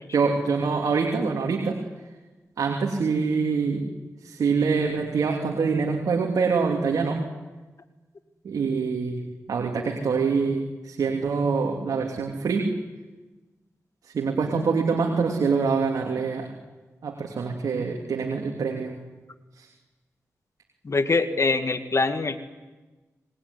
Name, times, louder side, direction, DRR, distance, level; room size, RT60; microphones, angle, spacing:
voice 1, 0.1-1.8 2.6-3.8 4.2-7.2 8.4-9.2 9.5-12.7 14.1-16.5 17.0-19.0 19.6-19.7, right 5 dB, 80° right, 1 dB, 3.0 m, -25 dB
voice 2, 20.8-22.4, left 3 dB, 50° left, 9 dB, 2.2 m, -23 dB
26.5 x 20.0 x 9.9 m, 1.2 s
cardioid pair, 45°, 6 cm